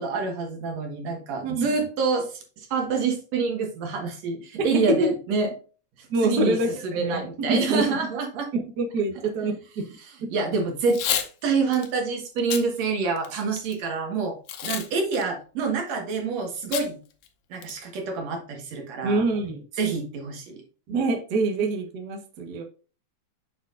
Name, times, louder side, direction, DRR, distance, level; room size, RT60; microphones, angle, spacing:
voice 1, 0.0-5.5 6.0-8.5 9.4-9.5 10.0-11.0 11.4-17.0 17.5-19.2 19.8-20.6, right 4 dB, 60° right, 3 dB, 2.5 m, -27 dB
voice 2, 6.1-7.8 8.5-9.8 19.0-19.6 20.9-22.6, right 2 dB, 75° right, 3 dB, 0.9 m, -26 dB
Packing tape duct tape / Tearing, 10.8-11.3 11.7-11.9 12.4-12.7 13.2-13.7 14.5-14.9 15.1-15.2 16.7-16.9 17.2-17.3 17.6-18.0, left 10 dB, 85° left, 2.6 m, -29 dB
7.2 x 6.2 x 2.5 m, 0.36 s
omnidirectional pair, 3.8 m